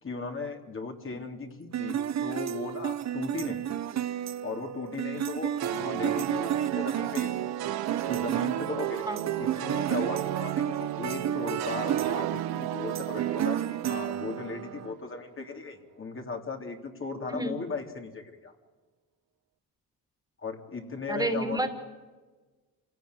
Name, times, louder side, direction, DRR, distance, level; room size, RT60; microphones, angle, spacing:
voice 1, 0.0-3.6 4.4-7.4 8.1-18.5 20.4-21.7, left 4 dB, 35° left, 3 dB, 3.1 m, -37 dB
sound 1, 1.7-14.9, right 10 dB, 50° right, 1.0 m, -32 dB
sound 2, 5.6-14.9, right 14 dB, 80° right, 1.1 m, -34 dB
voice 2, 21.1-21.7, right 1 dB, 10° right, 6 dB, 3.0 m, -30 dB
27.0 x 17.5 x 9.7 m, 1.3 s
cardioid pair, 95°, 36 cm